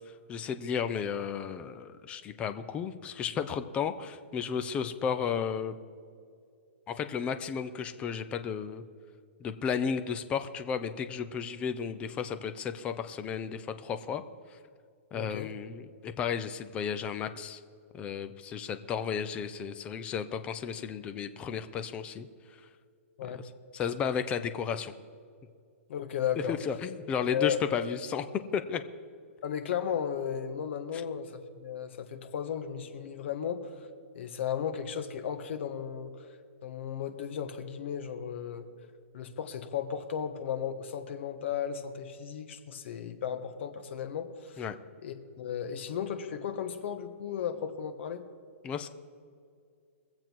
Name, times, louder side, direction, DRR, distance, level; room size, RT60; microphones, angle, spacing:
voice 1, 0.3-5.8 6.9-8.8 9.4-14.2 15.1-17.6 17.9-22.3 23.3-23.4 23.7-24.9 26.5-28.3 28.5-28.8 30.9-31.0 44.6-44.8 48.6-48.9, left 7 dB, 15° left, 9 dB, 0.5 m, -33 dB
voice 2, 15.1-15.5 23.2-23.4 25.9-26.6 27.3-27.6 29.4-33.7 34.1-36.1 36.6-38.6 39.1-44.6 45.0-48.2, left 8 dB, 50° left, 7 dB, 1.4 m, -35 dB
22.0 x 7.8 x 4.6 m, 2.2 s
hypercardioid pair, 160°, 8 cm